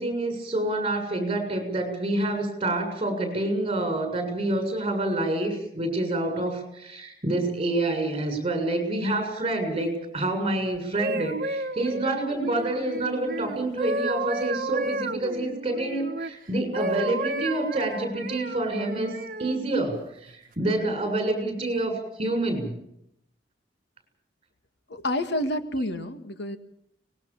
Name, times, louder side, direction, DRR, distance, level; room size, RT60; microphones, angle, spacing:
voice 1, 0.0-19.1 19.4-22.8, right 2 dB, 30° right, 6 dB, 7.0 m, -27 dB
sound 1, 10.7-16.3 16.7-19.6 20.3-20.5, right 2 dB, 50° right, 1.5 m, -32 dB
voice 2, 24.9-26.6, left 1 dB, 65° left, 8 dB, 1.9 m, -29 dB
24.5 x 20.5 x 7.4 m, 0.75 s
head